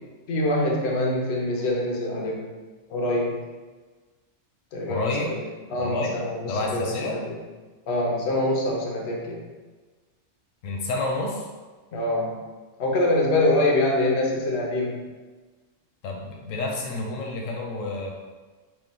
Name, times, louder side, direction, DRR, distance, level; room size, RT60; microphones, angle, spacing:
voice 1, 0.3-2.5 2.9-3.4 4.7-5.4 5.7-7.4 7.9-9.4 11.9-12.4 12.8-15.0, left 1 dB, 60° left, -1 dB, 0.9 m, -25 dB
voice 2, 4.9-5.4 5.8-6.2 6.5-7.2 10.6-11.5 16.0-18.1, left 2 dB, 90° left, 0 dB, 1.0 m, -29 dB
3.2 x 2.4 x 3.7 m, 1.3 s
omnidirectional pair, 1.3 m